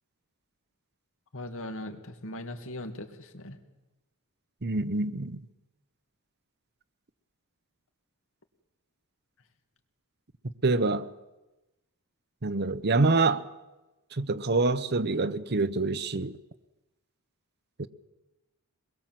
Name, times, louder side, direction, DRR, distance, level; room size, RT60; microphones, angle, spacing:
voice 1, 1.3-3.6, left 1 dB, 65° left, 2.5 m, -39 dB
voice 2, 4.6-5.4 10.6-11.1 12.4-13.4 14.2-16.3 17.8-17.9, right 3 dB, 50° right, 1.0 m, -26 dB
24.0 x 21.5 x 7.7 m
head